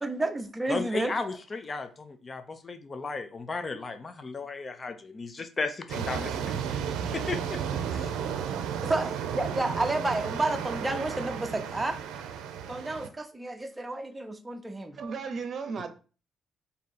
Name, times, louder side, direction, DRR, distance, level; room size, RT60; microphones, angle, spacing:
voice 1, 0.0-1.1 8.8-12.0 12.7-15.0, right 2 dB, 15° right, 0.6 m, -31 dB
voice 2, 0.7-6.5 7.1-7.6 7.9-8.1, left 4 dB, 30° left, 0.5 m, -35 dB
sound 1, 5.9-13.1, right 8 dB, 90° right, 0.5 m, -33 dB
voice 3, 15.0-15.9, right 5 dB, 50° right, 0.7 m, -34 dB
3.6 x 2.7 x 4.1 m
cardioid pair, 100°, 0 cm